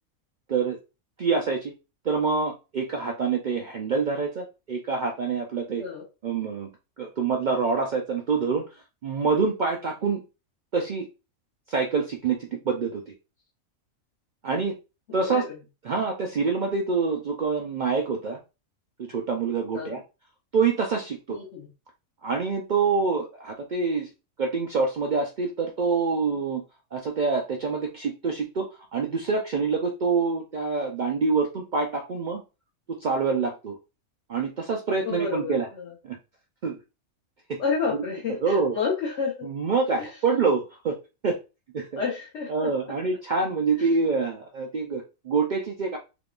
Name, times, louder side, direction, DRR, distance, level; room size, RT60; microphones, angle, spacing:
voice 1, 1.2-1.7 2.0-5.8 6.2-6.7 7.0-8.7 9.0-10.2 10.7-11.1 11.7-13.1 14.4-14.7 15.1-15.4 15.8-18.4 19.0-20.0 20.5-21.4 22.2-24.1 24.4-26.6 26.9-32.4 32.9-33.8 34.3-35.7 36.0-36.1 36.6-36.8 37.5-37.6 38.4-38.7 39.4-41.0 41.2-41.4 41.7-41.9 42.5-46.0, right 4 dB, 80° right, 1 dB, 0.4 m, -26 dB
voice 2, 21.3-21.7 35.0-35.9 37.6-39.5 40.0-40.1 42.0-42.7 43.8-43.9, left 5 dB, 60° left, -4 dB, 1.2 m, -30 dB
3.6 x 2.9 x 2.4 m, 0.29 s
omnidirectional pair, 1.4 m